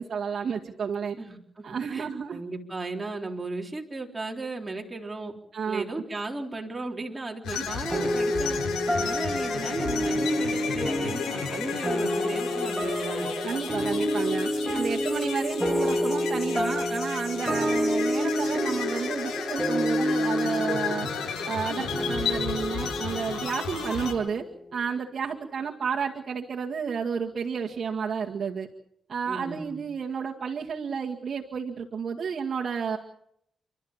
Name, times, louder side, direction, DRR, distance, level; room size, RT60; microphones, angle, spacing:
voice 1, 0.0-1.2 1.6-2.4 5.5-6.0 7.5-7.7 7.9-8.0 9.0-9.3 13.4-21.1 21.4-24.5 24.7-28.7 29.1-33.0, right 6 dB, 60° right, -1 dB, 2.0 m, -31 dB
voice 2, 1.2-5.3 5.7-8.6 9.0-13.3 29.3-29.8, right 2 dB, 25° right, 0 dB, 3.7 m, -36 dB
sound 1, 7.4-24.1, left 6 dB, 90° left, 7.5 m, -33 dB
sound 2, 7.9-24.7, equal, 5° left, 3.2 m, -29 dB
29.5 x 13.0 x 7.4 m, 0.76 s
cardioid pair, 70°, 0 cm